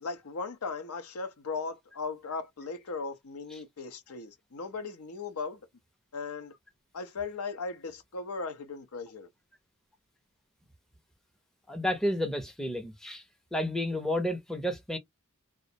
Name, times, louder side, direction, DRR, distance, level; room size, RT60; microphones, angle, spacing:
voice 1, 0.0-5.6 6.1-6.5 6.9-9.3, left 4 dB, 80° left, 0.6 m, -37 dB
voice 2, 11.7-13.2 13.5-15.0, left 1 dB, ahead, 0.5 m, -31 dB
2.4 x 2.0 x 2.7 m
head